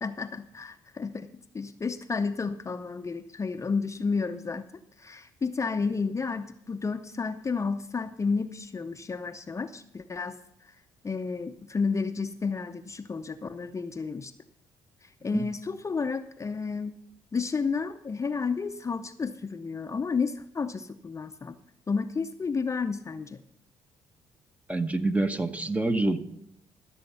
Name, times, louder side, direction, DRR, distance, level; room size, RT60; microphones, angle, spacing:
voice 1, 0.0-1.3 1.5-4.6 5.0-10.7 11.0-14.3 15.2-17.0 17.3-21.5 21.9-23.4, left 4 dB, 30° left, 9 dB, 0.6 m, -31 dB
voice 2, 24.7-26.2, right 2 dB, 15° right, 9 dB, 0.9 m, -26 dB
14.5 x 7.1 x 5.6 m, 0.76 s
supercardioid pair, 60°, 11 cm